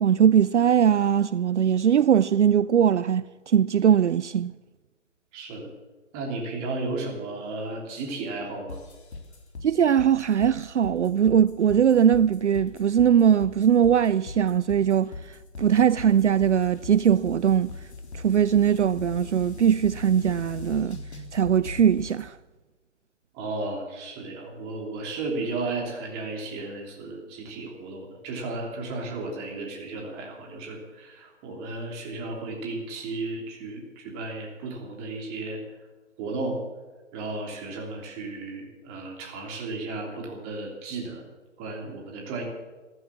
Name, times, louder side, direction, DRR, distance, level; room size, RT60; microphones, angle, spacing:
voice 1, 0.0-4.5 9.6-17.7 18.1-21.0 21.3-22.4, right 8 dB, 70° right, 0.5 m, -21 dB
voice 2, 5.3-5.7 6.1-8.8 23.3-35.6 36.2-36.6 37.1-41.3 41.6-42.4, right 3 dB, 20° right, 3.1 m, -34 dB
sound 1, 8.7-22.3, left 3 dB, 60° left, 3.7 m, -40 dB
14.5 x 14.0 x 7.2 m
figure-of-eight pair, 140°, 37 cm